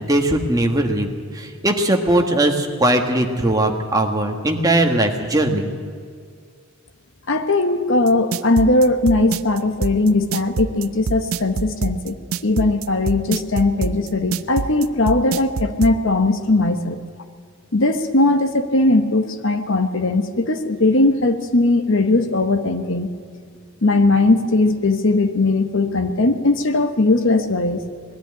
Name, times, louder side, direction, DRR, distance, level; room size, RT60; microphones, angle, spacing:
voice 1, 0.1-5.7, right 1 dB, 20° right, 3 dB, 1.5 m, -19 dB
voice 2, 7.3-12.2 12.4-17.0 17.7-23.1 23.8-27.8, left 2 dB, 65° left, 8 dB, 1.2 m, -19 dB
sound 1, 8.1-15.9, right 5 dB, 90° right, 0.6 m, -24 dB
20.0 x 13.5 x 9.9 m, 2.1 s
head